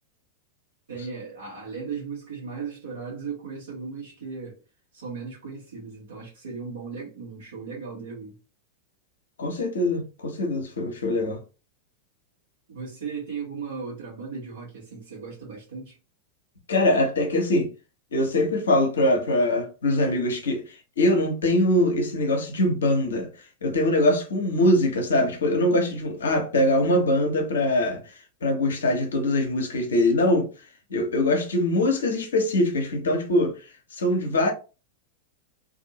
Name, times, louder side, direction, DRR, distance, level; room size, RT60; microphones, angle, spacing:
voice 1, 0.9-4.6 4.9-8.3 12.7-16.0, right 5 dB, 65° right, 1.0 m, -36 dB
voice 2, 9.4-11.4 16.7-17.7 18.1-23.3 23.6-28.0 28.4-30.5 30.9-33.6 33.9-34.5, left 1 dB, 65° left, 0.8 m, -23 dB
2.6 x 2.6 x 2.8 m
figure-of-eight pair, 90°, 0 cm